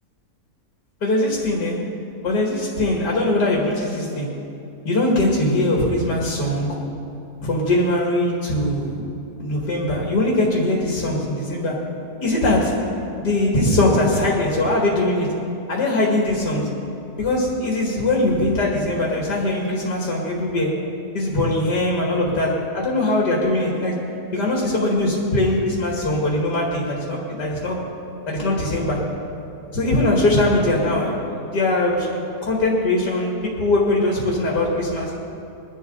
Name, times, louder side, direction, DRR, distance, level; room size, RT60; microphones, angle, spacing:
voice 1, 1.0-1.9 2.2-4.3 4.8-6.8 7.4-9.1 9.4-11.9 12.2-15.3 15.7-16.7 17.2-20.8 21.1-24.0 24.3-27.8 28.3-29.1 29.7-32.1 32.4-35.1, left 1 dB, 85° left, -3 dB, 2.7 m, -21 dB
22.5 x 11.5 x 4.0 m, 2.8 s
omnidirectional pair, 1.7 m